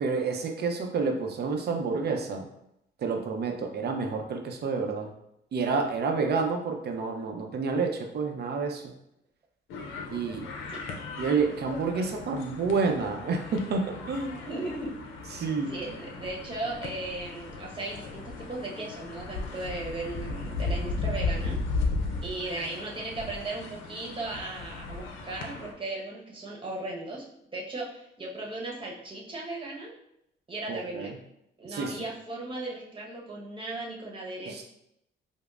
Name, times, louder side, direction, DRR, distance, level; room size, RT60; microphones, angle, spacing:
voice 1, 0.0-2.5 3.0-5.1 5.5-8.9 10.1-10.5 11.2-14.4 15.3-15.7 30.7-31.1 31.7-32.0 34.5-34.6, right 4 dB, 55° right, 3 dB, 0.6 m, -29 dB
sound 1, 9.7-25.7, left 3 dB, 85° left, 0.5 m, -36 dB
voice 2, 14.5-14.9 15.3-21.6 22.2-27.2 27.5-29.9 30.5-31.1 31.6-34.6, right 2 dB, 25° right, -3 dB, 1.0 m, -37 dB
5.1 x 2.0 x 2.4 m, 0.78 s
cardioid pair, 90°, 20 cm